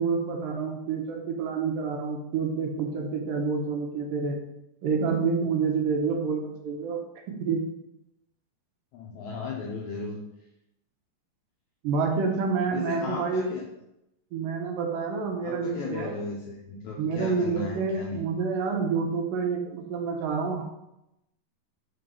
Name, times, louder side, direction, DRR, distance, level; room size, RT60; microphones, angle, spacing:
voice 1, 0.0-4.4 4.8-7.7 11.8-13.5 14.3-16.1 17.0-20.6, right 5 dB, 75° right, 2 dB, 2.5 m, -28 dB
voice 2, 8.9-10.2 12.7-13.7 15.4-18.2, left 3 dB, 80° left, -1 dB, 1.7 m, -35 dB
5.9 x 3.9 x 5.3 m, 0.87 s
omnidirectional pair, 4.1 m